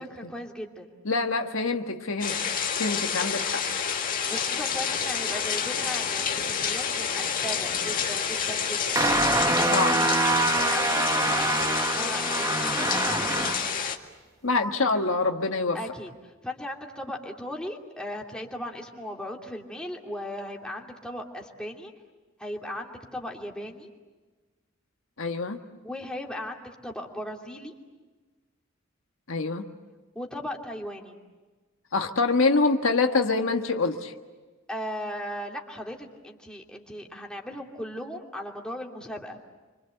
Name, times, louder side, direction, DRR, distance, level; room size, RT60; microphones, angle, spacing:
voice 1, 0.0-0.9 4.3-13.6 15.7-21.9 22.4-23.9 25.8-27.7 30.1-31.2 34.7-39.4, left 1 dB, 5° left, 0 dB, 2.8 m, -37 dB
voice 2, 1.0-2.3 2.8-3.6 9.7-10.0 14.4-15.8 25.2-25.6 29.3-29.7 31.9-34.1, left 3 dB, 75° left, 4 dB, 1.7 m, -25 dB
sound 1, 2.2-14.0, left 7 dB, 45° left, 2.0 m, -29 dB
sound 2, 8.9-13.8, right 2 dB, 15° right, 1.1 m, -25 dB
28.5 x 25.0 x 7.9 m, 1.3 s
head